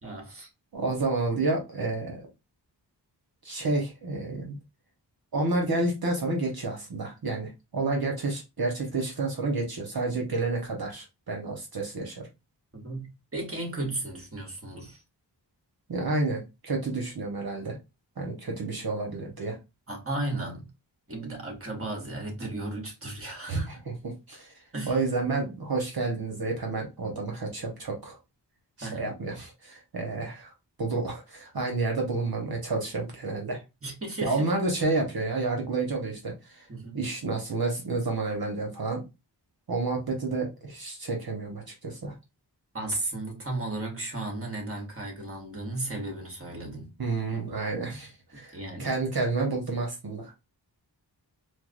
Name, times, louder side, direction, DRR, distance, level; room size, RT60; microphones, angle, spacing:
voice 1, 0.0-0.5 12.7-15.0 19.9-20.7 21.1-23.7 24.7-25.0 28.8-29.1 33.8-34.5 36.7-37.0 42.7-46.9 48.5-48.9, right 2 dB, 30° right, 1.4 m, -35 dB
voice 2, 0.7-2.3 3.4-4.6 5.3-12.3 15.9-17.8 18.2-19.6 23.5-24.5 24.9-28.2 28.8-30.5 30.8-33.6 34.2-36.7 36.9-39.0 39.7-42.1 47.0-50.3, right 3 dB, 55° right, 1.0 m, -30 dB
4.5 x 2.0 x 2.4 m
wide cardioid pair, 55°, 44 cm